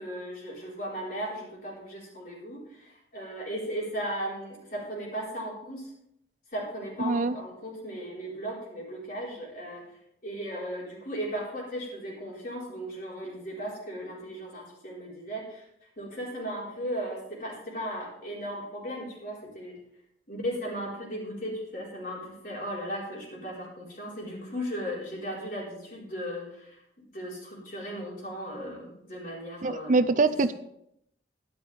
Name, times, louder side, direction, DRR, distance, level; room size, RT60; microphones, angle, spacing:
voice 1, 0.0-5.9 6.5-9.8 10.2-15.6 16.0-19.8 20.3-26.8 27.1-30.0, equal, 50° left, -4 dB, 4.4 m, -36 dB
voice 2, 29.6-30.5, right 3 dB, 45° right, 11 dB, 0.5 m, -23 dB
12.0 x 11.0 x 3.5 m, 0.76 s
head